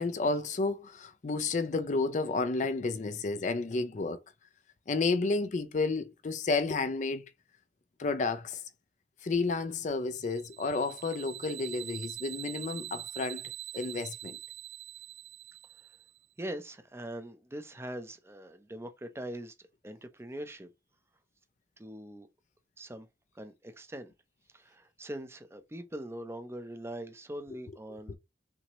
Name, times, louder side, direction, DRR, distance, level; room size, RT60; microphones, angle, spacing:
voice 1, 0.0-4.2 4.9-7.2 8.0-8.6 9.2-13.4 13.7-14.4 28.1-28.2, left 3 dB, 40° left, 0.4 m, -31 dB
sound 1, 10.2-16.2, right 14 dB, 65° right, 0.4 m, -44 dB
voice 2, 16.4-19.5 19.8-20.7 21.8-22.3 22.8-23.1 23.3-24.1 24.5-28.1, right 1 dB, 15° right, 0.6 m, -42 dB
5.9 x 2.8 x 3.0 m
head